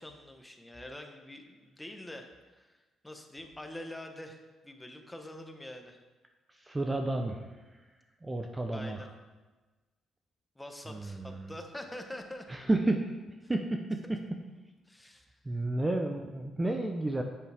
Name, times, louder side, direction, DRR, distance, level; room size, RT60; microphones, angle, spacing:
voice 1, 0.0-2.8 3.0-6.0 8.7-9.1 10.5-12.5 13.4-13.5 14.0-14.2 14.9-15.6, left 1 dB, 10° left, 4 dB, 1.3 m, -45 dB
voice 2, 6.5-7.4 8.2-9.1 10.9-11.5 12.5-13.0 13.5-14.2 15.4-17.2, right 2 dB, 20° right, 4 dB, 0.8 m, -31 dB
10.5 x 8.6 x 3.6 m, 1.2 s
cardioid pair, 90°, 0 cm